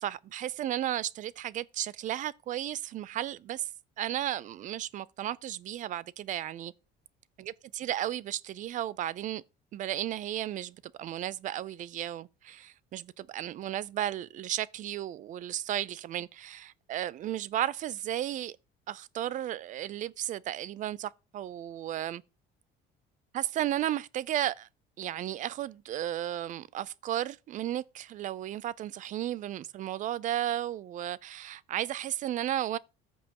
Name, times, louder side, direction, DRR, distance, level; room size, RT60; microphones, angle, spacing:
voice 1, 0.0-3.7 4.0-6.7 7.4-9.4 9.7-18.6 18.9-22.2 23.3-24.7 25.0-32.8, right 12 dB, 45° right, 0.4 m, -34 dB
14.0 x 5.4 x 2.9 m
cardioid pair, 140°, 19 cm